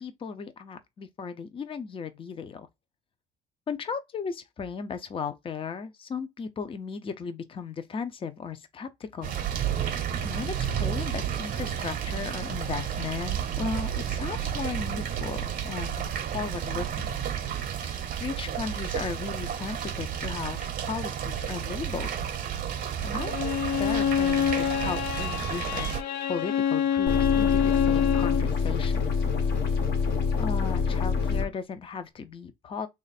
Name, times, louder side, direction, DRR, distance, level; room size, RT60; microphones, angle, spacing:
voice 1, 0.0-2.7 3.7-9.3 9.7-17.2 17.6-22.3 22.7-25.9 26.3-29.0 30.4-32.9, left 5 dB, 30° left, 0.6 m, -36 dB
sound 1, 9.2-26.0, right 9 dB, 55° right, 0.8 m, -31 dB
Bowed string instrument, 23.1-28.5, left 8 dB, 90° left, 0.6 m, -26 dB
sound 2, 27.1-31.5, left 5 dB, 75° left, 1.3 m, -26 dB
3.2 x 2.5 x 4.0 m
cardioid pair, 110°, 17 cm